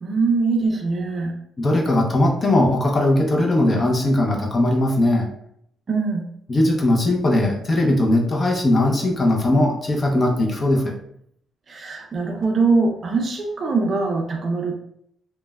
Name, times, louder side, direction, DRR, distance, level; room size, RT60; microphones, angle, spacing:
voice 1, 0.0-1.3 5.9-6.3 11.7-14.7, right 4 dB, 40° right, 2 dB, 0.5 m, -22 dB
voice 2, 1.6-5.3 6.5-11.0, left 1 dB, 35° left, 0 dB, 0.6 m, -19 dB
3.1 x 2.1 x 2.3 m, 0.71 s
cardioid pair, 90°, 0 cm